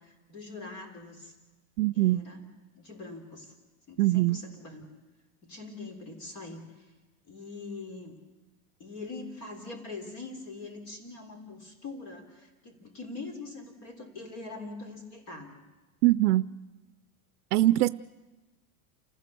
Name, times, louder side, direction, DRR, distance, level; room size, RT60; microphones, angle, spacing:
voice 1, 0.0-1.3 1.9-2.4 2.7-3.5 3.9-4.8 5.4-6.9 7.3-8.1 8.8-15.6, left 3 dB, 35° left, 4 dB, 3.5 m, -43 dB
voice 2, 1.8-2.2 4.0-4.4 16.0-16.5 17.5-17.9, right 17 dB, 85° right, 15 dB, 0.6 m, -22 dB
29.0 x 15.0 x 6.9 m, 1.2 s
supercardioid pair, 170°, 44 cm